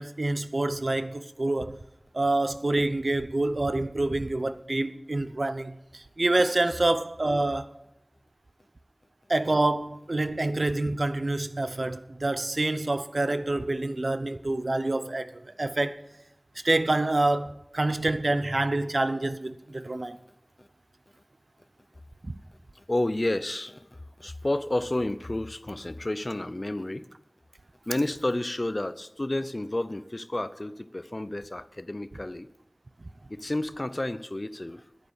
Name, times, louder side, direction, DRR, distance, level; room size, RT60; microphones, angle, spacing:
voice 1, 0.0-1.8 2.1-7.7 9.3-16.0 16.6-20.2, right 2 dB, 75° right, 0.7 m, -27 dB
voice 2, 22.7-27.1 27.9-32.5 33.3-34.8, left 1 dB, 50° left, 0.7 m, -31 dB
10.5 x 9.8 x 7.1 m
wide cardioid pair, 40°, 0 cm